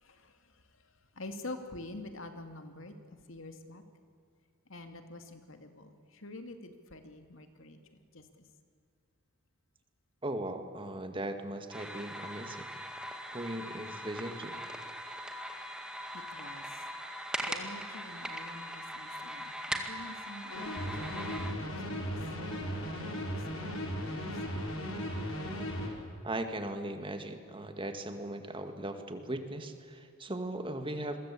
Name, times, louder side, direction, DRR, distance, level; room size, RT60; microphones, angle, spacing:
voice 1, 0.0-0.3 1.2-2.9 3.3-3.8 4.7-7.8 8.1-8.4 16.1-16.6 17.4-22.2 23.3-23.7 24.1-24.4, left 2 dB, 65° left, 7 dB, 2.4 m, -47 dB
voice 2, 10.2-12.7 13.3-14.6 26.2-31.2, right 1 dB, 25° right, 7 dB, 2.0 m, -38 dB
sound 1, 11.7-21.5, equal, 5° right, 2.0 m, -40 dB
sound 2, 20.5-25.9, equal, 85° left, 6.3 m, -36 dB
28.0 x 23.0 x 8.5 m, 2.3 s
head